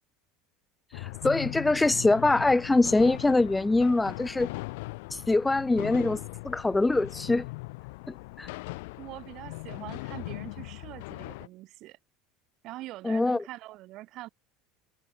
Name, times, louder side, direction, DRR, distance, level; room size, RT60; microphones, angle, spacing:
sound 1, 0.9-11.5, left 24 dB, 75° left, 0.9 m, -39 dB
voice 1, 0.9-4.5 5.1-7.4 8.4-8.5 13.0-13.4, left 2 dB, 10° left, 0.5 m, -24 dB
voice 2, 9.0-12.0 12.6-14.3, right 17 dB, 55° right, 4.2 m, -43 dB
hypercardioid pair, 90°, 0 cm